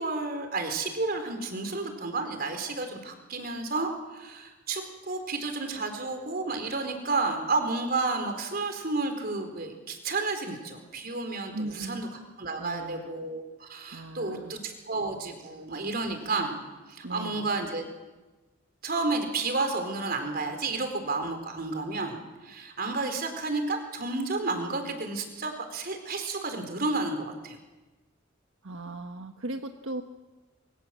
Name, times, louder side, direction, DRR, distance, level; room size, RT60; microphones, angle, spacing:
voice 1, 0.0-12.1 12.4-16.6 16.9-17.8 18.8-22.2 22.4-27.6, right 3 dB, 50° right, 6 dB, 4.3 m, -31 dB
voice 2, 11.5-12.1 12.6-13.1 13.9-14.6 17.0-17.5 28.6-30.0, right 2 dB, 80° right, 5 dB, 1.4 m, -37 dB
27.0 x 24.0 x 7.8 m, 1.2 s
head